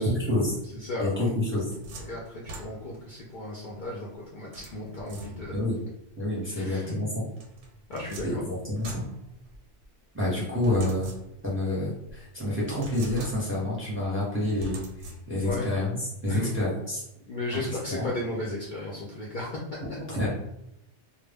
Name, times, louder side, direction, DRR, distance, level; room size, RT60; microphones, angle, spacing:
voice 1, 0.0-0.6 1.0-1.6 5.5-5.7 6.2-7.1 8.2-9.0 10.1-11.1 11.4-17.0 17.9-18.1 20.2-20.3, left 1 dB, 15° right, -6 dB, 0.6 m, -28 dB
voice 2, 0.7-1.3 2.0-5.5 6.6-7.0 7.9-8.4 15.4-15.7 16.3-16.6 17.3-19.5, left 2 dB, 55° left, -4 dB, 0.6 m, -35 dB
sound 1, 1.2-3.1 4.5-5.7 7.4-9.9 10.6-11.6 12.1-12.2 12.7-13.8 14.6-15.6, right 1 dB, 90° right, 0.9 m, -43 dB
2.1 x 2.0 x 3.3 m, 0.83 s
omnidirectional pair, 1.2 m